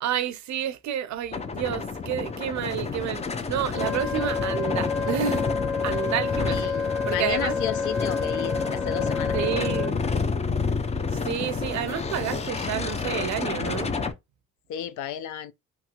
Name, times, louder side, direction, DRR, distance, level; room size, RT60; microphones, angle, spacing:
voice 1, 0.0-5.5 5.8-6.7 7.0-7.6 9.3-10.0 11.1-13.9, right 9 dB, 65° right, 0.5 m, -30 dB
sound 1, 1.3-14.1, left 4 dB, 20° left, 0.4 m, -29 dB
Wind instrument woodwind instrument, 3.7-9.9, left 5 dB, 50° left, 1.1 m, -29 dB
voice 2, 6.5-9.4 14.7-15.5, left 10 dB, 80° left, 0.5 m, -33 dB
2.9 x 2.9 x 2.2 m
cardioid pair, 90°, 30 cm